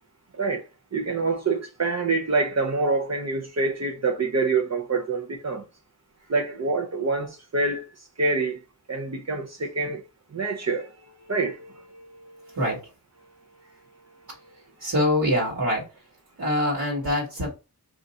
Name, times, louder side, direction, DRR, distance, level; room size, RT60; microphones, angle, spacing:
voice 1, 0.9-5.6 6.3-7.8 8.2-8.6 8.9-10.0 10.3-10.8 11.3-11.7, right 3 dB, 45° right, 0.6 m, -26 dB
voice 2, 14.8-15.9 16.4-17.5, left 1 dB, 60° right, 1.3 m, -24 dB
2.6 x 2.5 x 4.0 m
wide cardioid pair, 90°, 39 cm